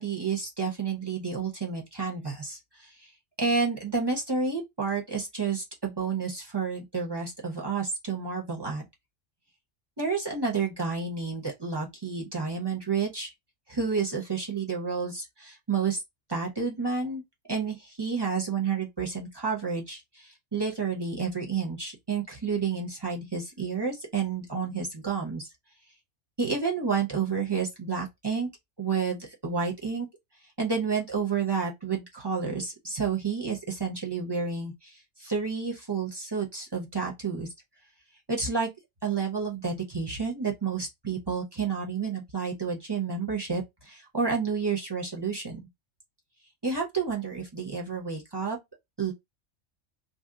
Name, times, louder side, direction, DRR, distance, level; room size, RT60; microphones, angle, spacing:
voice 1, 0.0-2.9 3.4-8.8 10.0-13.3 13.7-16.0 16.3-17.2 17.5-25.5 26.4-28.5 28.8-30.1 30.6-37.5 38.3-38.7 39.0-45.6 46.6-48.6 49.0-49.1, right 5 dB, 25° right, 0.8 m, -30 dB
2.8 x 2.0 x 3.7 m
omnidirectional pair, 1.3 m